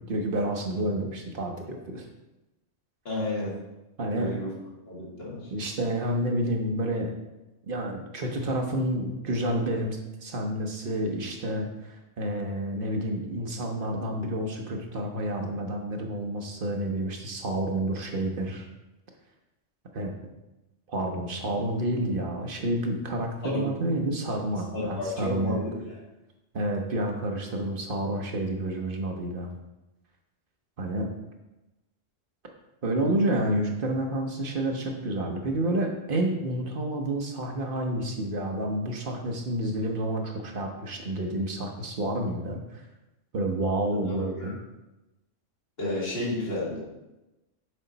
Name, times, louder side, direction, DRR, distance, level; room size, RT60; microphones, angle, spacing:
voice 1, 0.0-2.0 4.0-4.3 5.5-7.1 7.7-18.7 19.9-20.1 20.9-25.6 26.5-29.5 30.8-31.1 32.8-42.8 43.3-44.5, right 1 dB, 50° right, 2 dB, 1.0 m, -29 dB
voice 2, 3.0-3.5 4.2-4.5 4.9-5.5 23.4-23.7 24.7-26.0 44.0-44.5 45.8-46.8, left 2 dB, 55° left, -5 dB, 2.1 m, -32 dB
6.6 x 4.3 x 3.9 m, 0.99 s
omnidirectional pair, 1.2 m